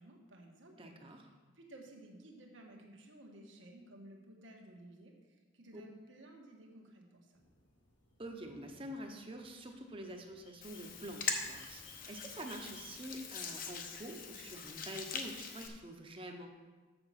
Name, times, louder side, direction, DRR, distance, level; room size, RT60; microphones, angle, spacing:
voice 1, 0.0-7.4, right 1 dB, 80° right, 1 dB, 1.4 m, -56 dB
voice 2, 0.8-1.2 5.7-5.8 8.2-16.5, right 1 dB, 30° right, 3 dB, 0.8 m, -47 dB
sound 1, 7.3-13.1, left 3 dB, 70° left, 2.1 m, -61 dB
Hands, 10.6-15.7, left 5 dB, 45° left, 0.8 m, -42 dB
7.2 x 6.9 x 5.7 m, 1.3 s
head